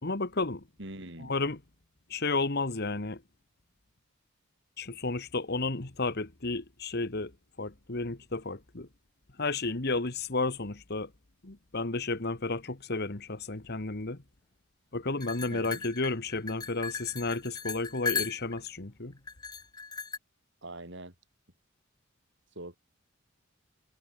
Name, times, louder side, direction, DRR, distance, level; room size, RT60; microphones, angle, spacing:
voice 1, 0.0-0.6 1.2-1.6 2.1-3.2 4.8-7.3 7.6-8.9 9.4-11.1 11.4-14.2 14.9-19.1, left 3 dB, 50° left, 1.6 m, -32 dB
voice 2, 0.8-1.3 15.5-15.8 20.6-21.1 22.6-22.8, right 1 dB, 60° right, 5.9 m, -43 dB
sound 1, 15.2-18.7 19.3-20.2, left 5 dB, 20° left, 0.7 m, -37 dB
head